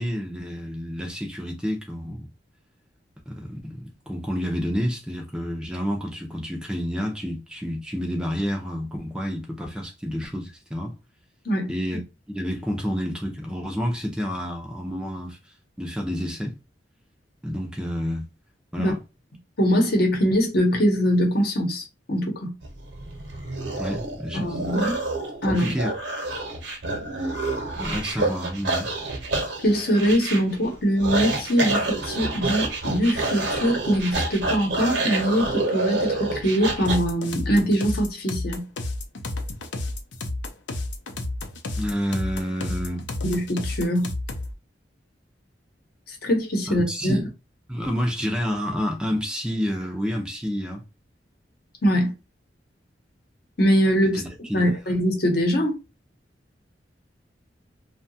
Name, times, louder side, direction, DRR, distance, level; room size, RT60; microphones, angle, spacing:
voice 1, 0.0-2.3 3.3-10.9 11.7-12.0 12.3-15.4 15.8-16.5 17.4-18.3 18.7-19.0 23.8-24.5 25.5-25.9 27.8-28.9 41.8-43.0 46.7-47.3 47.7-50.8 54.1-54.7, equal, 5° right, 0.5 m, -29 dB
voice 2, 19.6-22.5 24.3-25.0 25.4-25.7 29.6-38.6 43.2-44.1 46.1-47.2 51.8-52.1 53.6-54.2 54.5-55.8, equal, 60° left, 0.9 m, -22 dB
sound 1, 22.6-37.0, right 2 dB, 70° right, 0.8 m, -28 dB
sound 2, 36.8-44.5, left 2 dB, 80° left, 0.5 m, -31 dB
2.7 x 2.2 x 2.6 m
head